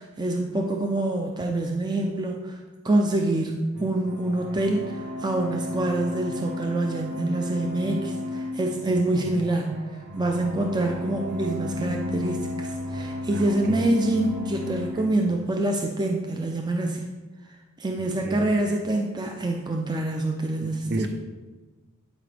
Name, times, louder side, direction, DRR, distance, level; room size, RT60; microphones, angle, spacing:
voice 1, 0.0-2.6 2.8-9.8 10.1-17.1 17.8-21.1, right 2 dB, 20° right, 2 dB, 0.5 m, -26 dB
sound 1, 3.7-14.9, left 2 dB, 75° right, 1.7 m, -34 dB
voice 2, 13.3-13.9 18.2-18.6 20.6-21.1, right 2 dB, 50° right, 6 dB, 0.8 m, -33 dB
11.5 x 5.0 x 3.4 m, 1.3 s
head